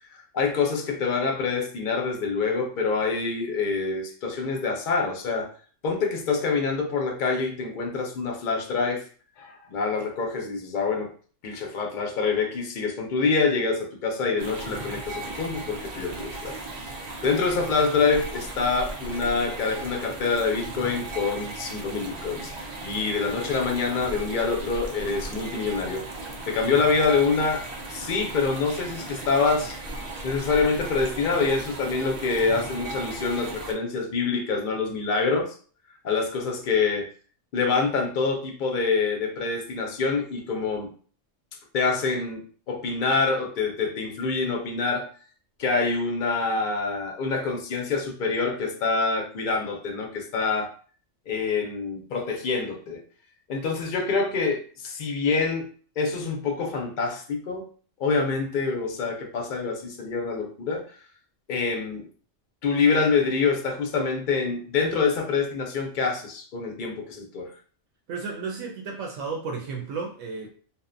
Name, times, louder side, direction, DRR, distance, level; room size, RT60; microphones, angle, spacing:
voice 1, 0.3-5.5 5.8-9.0 9.4-11.1 11.4-16.6 17.2-26.1 26.5-27.6 27.9-29.8 30.2-35.5 36.0-37.1 37.5-40.9 41.7-45.1 45.6-50.7 51.3-53.0 53.5-55.7 56.0-57.7 58.0-60.8 61.5-62.1 62.6-67.5, left 4 dB, 60° left, 2 dB, 0.5 m, -26 dB
sound 1, 14.4-33.7, right 2 dB, 60° right, 0.4 m, -36 dB
voice 2, 68.1-70.5, right 4 dB, 80° right, 0 dB, 0.9 m, -33 dB
2.6 x 2.1 x 2.5 m, 0.43 s
omnidirectional pair, 1.3 m